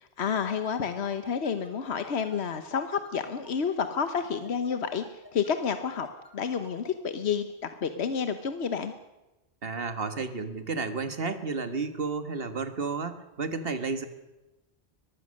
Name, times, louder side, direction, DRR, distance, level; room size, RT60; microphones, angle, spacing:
voice 1, 0.2-6.1 6.3-8.9, left 6 dB, 80° left, 9 dB, 1.3 m, -30 dB
sound 1, 0.6-6.9, left 1 dB, 20° left, 4.2 m, -51 dB
voice 2, 9.6-14.1, right 4 dB, 65° right, 9 dB, 1.8 m, -32 dB
23.0 x 20.5 x 6.5 m, 1.0 s
omnidirectional pair, 1.1 m